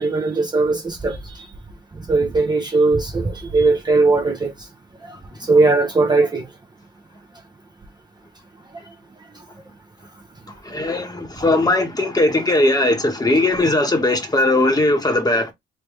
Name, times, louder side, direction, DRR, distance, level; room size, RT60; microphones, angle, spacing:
voice 1, 0.0-1.5 2.0-4.5 5.0-6.5, right 3 dB, 20° right, 0.7 m, -19 dB
voice 2, 10.6-15.5, left 2 dB, 20° left, 1.2 m, -19 dB
3.4 x 3.0 x 3.1 m
cardioid pair, 90°, 20 cm